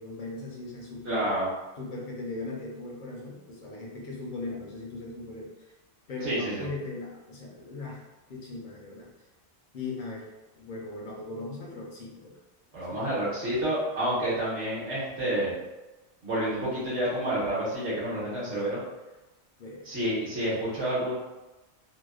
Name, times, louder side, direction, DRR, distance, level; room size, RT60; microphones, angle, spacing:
voice 1, 0.0-1.3 1.8-5.7 6.1-8.0 8.3-9.1 9.7-10.3 10.5-12.3 12.9-13.0 19.6-19.9, left 2 dB, 55° left, -2 dB, 0.6 m, -38 dB
voice 2, 1.0-1.5 6.2-6.7 12.7-15.6 16.2-18.8 19.8-21.2, right 1 dB, 70° right, -10 dB, 1.2 m, -29 dB
2.7 x 2.0 x 2.3 m, 1.1 s
omnidirectional pair, 1.2 m